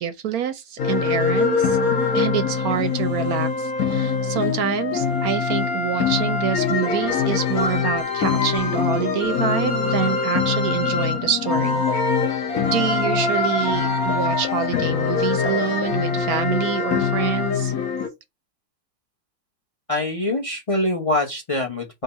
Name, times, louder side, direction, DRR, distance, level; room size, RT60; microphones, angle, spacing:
voice 1, 0.0-1.8 2.1-11.8 12.7-17.7, right 9 dB, 70° right, 0.9 m, -26 dB
sound 1, 0.8-18.1, left 5 dB, 55° left, 1.3 m, -23 dB
voice 2, 19.9-22.0, left 2 dB, 30° left, 0.6 m, -24 dB
3.7 x 2.7 x 3.9 m
omnidirectional pair, 1.9 m